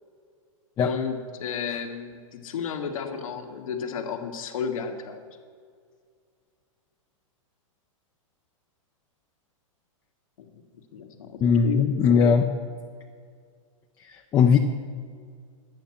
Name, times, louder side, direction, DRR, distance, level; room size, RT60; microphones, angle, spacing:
voice 1, 0.8-5.2 10.4-10.6 10.9-11.9, left 6 dB, 75° left, 3 dB, 1.7 m, -33 dB
voice 2, 11.4-12.5 14.1-14.6, left 6 dB, 20° left, 3 dB, 0.6 m, -20 dB
10.5 x 9.1 x 7.2 m, 2.1 s
hypercardioid pair, 135°, 18 cm